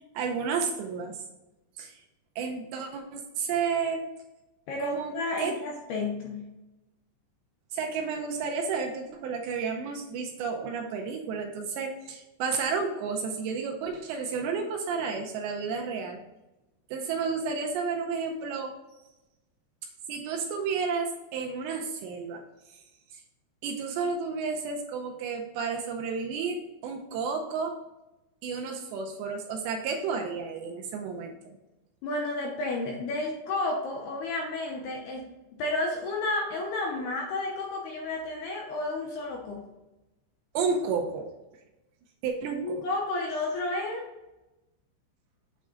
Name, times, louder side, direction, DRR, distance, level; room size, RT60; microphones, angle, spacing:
voice 1, 0.2-1.2 1.8-2.0 2.4-4.0 4.8-5.1 5.4-5.5 7.7-16.2 16.9-18.7 20.1-22.4 23.6-27.7 28.4-31.6 40.5-41.3 42.2-42.8, right 5 dB, 80° right, 2 dB, 2.7 m, -31 dB
voice 2, 4.7-6.5 32.0-35.3 35.5-39.6 42.6-44.1, left 2 dB, 75° left, -1 dB, 2.5 m, -31 dB
8.3 x 3.7 x 3.8 m, 0.99 s
omnidirectional pair, 5.4 m